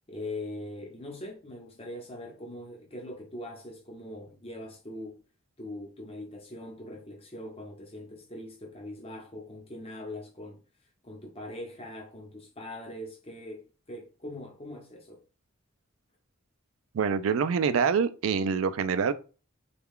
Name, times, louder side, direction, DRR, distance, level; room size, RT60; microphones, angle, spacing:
voice 1, 0.1-5.2 5.6-10.6 11.0-15.2, left 1 dB, 30° left, 0.8 m, -41 dB
voice 2, 16.9-19.1, right 6 dB, 80° right, 0.4 m, -25 dB
3.3 x 2.3 x 3.6 m
head